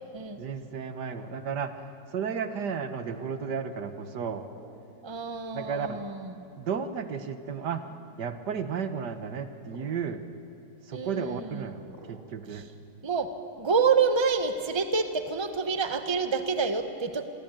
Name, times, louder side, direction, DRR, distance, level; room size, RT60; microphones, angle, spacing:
voice 1, 0.4-4.5 5.5-6.0 6.6-7.8 8.2-10.2 10.8-12.7, right 6 dB, 75° right, 9 dB, 1.9 m, -33 dB
sound 1, 1.3-1.6 3.0-3.4 4.5-4.8 5.8-6.2 6.9-7.1 7.8-8.0 9.1-9.3 9.7-9.9 11.1-11.3 11.9-12.2 13.6-13.9, right 2 dB, 40° right, 4.9 m, -52 dB
voice 2, 5.0-6.4 10.9-11.6 12.5-12.6 13.0-17.2, right 5 dB, 20° right, 8 dB, 1.1 m, -28 dB
27.0 x 22.5 x 9.0 m, 2.7 s
omnidirectional pair, 1.8 m